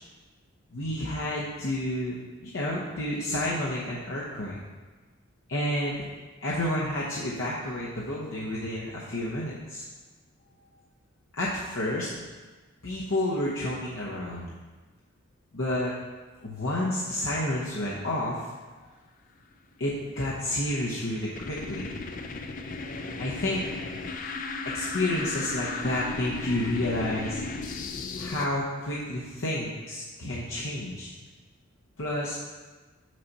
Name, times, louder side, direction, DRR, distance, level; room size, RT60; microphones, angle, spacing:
voice 1, 0.7-2.1 2.4-4.6 5.5-6.1 6.4-9.8 11.4-12.1 12.8-14.5 15.5-15.9 16.4-18.5 19.8-21.9 23.2-23.6 24.6-27.6 28.2-31.1 32.0-32.4, left 1 dB, 70° left, -6 dB, 0.9 m, -30 dB
sound 1, 20.3-28.5, left 3 dB, 40° left, 0.4 m, -35 dB
6.3 x 5.8 x 4.1 m, 1.3 s
head